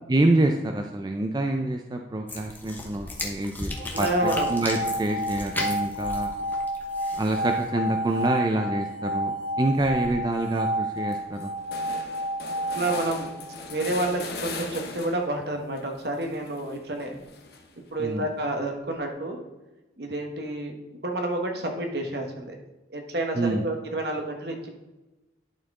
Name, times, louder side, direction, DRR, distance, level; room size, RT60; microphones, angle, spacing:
voice 1, 0.1-3.7 4.0-6.3 7.1-11.5 18.0-18.3 23.4-23.7, right 2 dB, 20° right, 3 dB, 0.4 m, -26 dB
sound 1, 2.3-7.7, left 2 dB, 10° left, 0.9 m, -36 dB
sound 2, 3.7-13.9, right 1 dB, 35° left, 2.5 m, -30 dB
voice 2, 3.9-4.5 12.7-13.3 13.7-17.2 17.9-19.5 20.0-20.7 21.0-22.5 22.9-24.7, right 1 dB, 60° right, 3 dB, 1.2 m, -29 dB
sound 3, 9.7-10.2 10.6-10.7 11.0-15.4 15.8-17.9, left 3 dB, 55° left, 0.8 m, -40 dB
11.0 x 4.3 x 3.7 m, 1.1 s
head